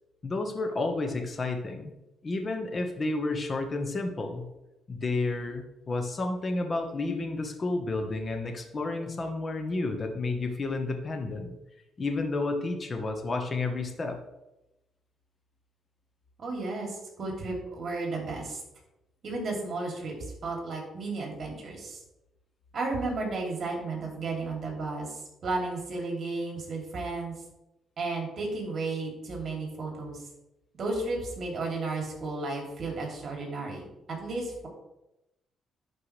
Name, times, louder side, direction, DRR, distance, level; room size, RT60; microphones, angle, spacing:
voice 1, 0.2-1.9 2.2-4.4 4.9-11.5 12.0-14.2, left 3 dB, 35° left, 5 dB, 1.3 m, -31 dB
voice 2, 16.4-18.6 19.2-20.2 20.4-22.0 22.7-27.3 28.0-30.2 30.7-33.8 34.1-34.7, right 3 dB, 50° right, 0 dB, 2.9 m, -33 dB
11.0 x 4.8 x 3.4 m, 0.92 s
cardioid pair, 90°, 0 cm